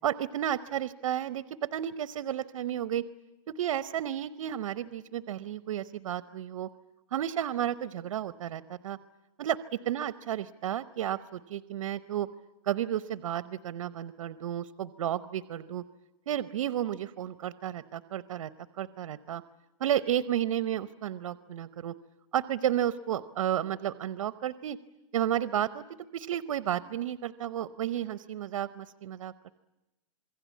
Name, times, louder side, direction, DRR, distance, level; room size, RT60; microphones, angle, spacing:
voice 1, 0.0-3.0 3.6-6.7 7.1-9.0 9.4-9.6 9.8-12.3 12.6-15.8 16.3-18.5 18.8-19.4 19.8-21.9 22.3-24.8 25.1-25.8 26.1-29.5, right 11 dB, 75° right, 13 dB, 0.9 m, -32 dB
27.0 x 22.5 x 8.4 m, 0.98 s
supercardioid pair, 165°, 17 cm